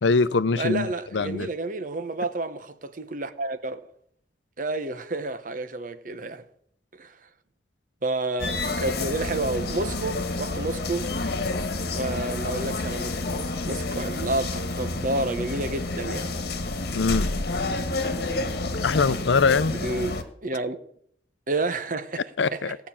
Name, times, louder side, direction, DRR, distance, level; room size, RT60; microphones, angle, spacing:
voice 1, 0.0-0.9 1.1-1.5 16.9-17.3 18.8-19.7 22.4-22.8, left 4 dB, 85° left, 0.6 m, -22 dB
voice 2, 0.6-3.9 4.6-6.4 7.0-7.2 8.0-11.1 11.9-16.3 19.7-20.8 21.5-22.2 22.5-22.7, right 2 dB, 45° right, 1.0 m, -30 dB
sound 1, 8.4-20.2, left 2 dB, 60° left, 1.4 m, -29 dB
16.5 x 6.0 x 8.6 m
head